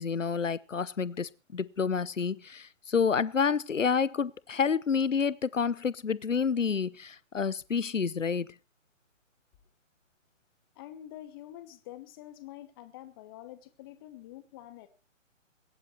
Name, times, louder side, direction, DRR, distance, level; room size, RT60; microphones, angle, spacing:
voice 1, 0.0-8.5, left 6 dB, 70° left, 0.9 m, -29 dB
voice 2, 10.7-14.9, left 13 dB, 15° left, 1.1 m, -47 dB
21.5 x 11.0 x 4.4 m
figure-of-eight pair, 135°, 39 cm